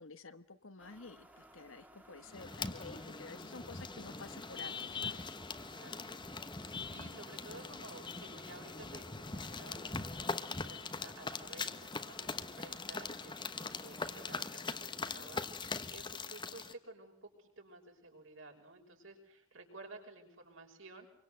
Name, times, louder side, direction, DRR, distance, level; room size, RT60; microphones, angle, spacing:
voice 1, 0.0-5.3, left 4 dB, 65° left, 11 dB, 1.4 m, -51 dB
sound 1, 0.8-14.4, right 1 dB, 5° right, 2.0 m, -59 dB
sound 2, 2.3-16.7, left 4 dB, 20° left, 1.1 m, -42 dB
voice 2, 5.6-6.2 6.9-21.1, right 2 dB, 65° right, 2 dB, 6.1 m, -54 dB
26.0 x 24.0 x 7.9 m, 0.71 s
head